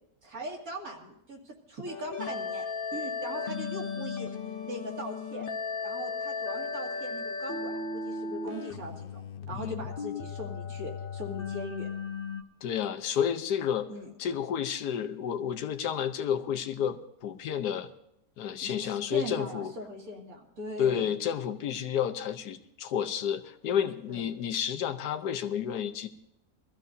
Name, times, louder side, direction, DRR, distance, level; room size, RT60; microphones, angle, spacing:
voice 1, 0.2-2.7 2.9-4.3 4.6-5.5 5.8-11.9 13.9-14.1 18.6-21.1 24.1-24.3, equal, 60° right, -1 dB, 2.6 m, -40 dB
sound 1, 1.9-12.4, left 4 dB, 50° left, 0.7 m, -36 dB
voice 2, 9.4-9.8 12.6-13.9 14.2-17.9 18.4-19.7 20.8-26.1, left 8 dB, 85° left, 7 dB, 1.3 m, -31 dB
22.5 x 14.0 x 2.7 m, 0.76 s
omnidirectional pair, 1.7 m